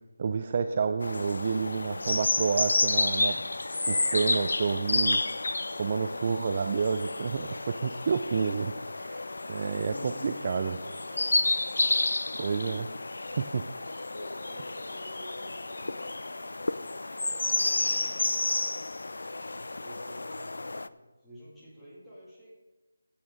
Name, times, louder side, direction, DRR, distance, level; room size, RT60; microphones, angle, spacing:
voice 1, 0.2-3.4 3.9-5.2 5.8-9.2 9.5-10.8 12.4-12.9 13.4-13.7, right 5 dB, 30° right, 8 dB, 0.4 m, -29 dB
sound 1, 1.0-20.9, left 2 dB, 75° left, 0.5 m, -31 dB
voice 2, 9.4-11.4 14.2-16.1 17.4-18.3 19.4-22.5, equal, 5° left, -11 dB, 2.5 m, -51 dB
Bass guitar, 9.9-12.9, left 3 dB, 40° left, 1.7 m, -49 dB
16.0 x 8.4 x 3.9 m, 1.2 s
figure-of-eight pair, 170°, 0 cm